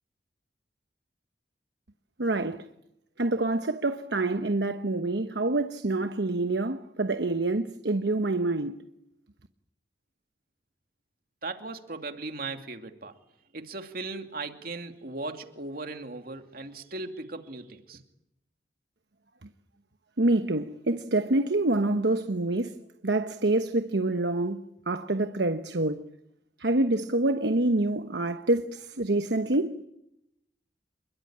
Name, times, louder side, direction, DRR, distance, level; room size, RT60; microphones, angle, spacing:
voice 1, 2.2-2.6 3.2-8.8 20.2-22.8 23.0-26.0 26.6-29.8, right 2 dB, 75° right, 1.1 m, -26 dB
voice 2, 11.4-13.2 13.5-18.0, right 3 dB, 55° right, 2.5 m, -38 dB
28.0 x 22.0 x 8.8 m
head